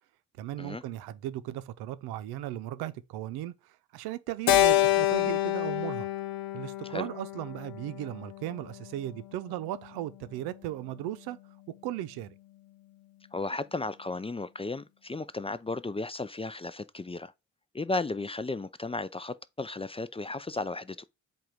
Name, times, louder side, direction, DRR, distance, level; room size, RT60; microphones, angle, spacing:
voice 1, 0.4-6.1 6.5-11.4 11.8-12.3, right 13 dB, 80° right, 0.7 m, -37 dB
Keyboard (musical), 4.5-8.9, left 15 dB, 65° left, 0.8 m, -27 dB
voice 2, 13.3-17.3 17.7-21.0, left 3 dB, 15° left, 0.5 m, -34 dB
7.6 x 2.5 x 5.0 m
hypercardioid pair, 50°, 38 cm